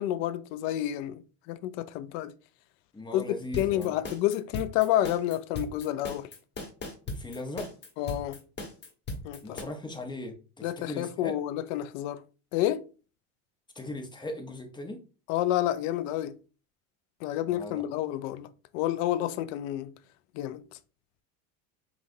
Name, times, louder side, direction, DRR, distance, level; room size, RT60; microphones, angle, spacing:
voice 1, 0.0-2.3 3.1-3.2 3.6-6.3 8.0-8.4 9.2-9.6 10.6-12.2 12.5-12.8 15.3-16.3 17.2-19.9 20.3-20.6, left 13 dB, 65° left, 0.5 m, -29 dB
voice 2, 2.9-3.9 7.1-7.7 9.4-11.4 13.7-15.0 17.5-17.8, left 1 dB, 10° left, 0.8 m, -39 dB
sound 1, 3.5-9.6, left 2 dB, 25° left, 1.2 m, -37 dB
5.7 x 2.4 x 2.6 m
supercardioid pair, 105°, 41 cm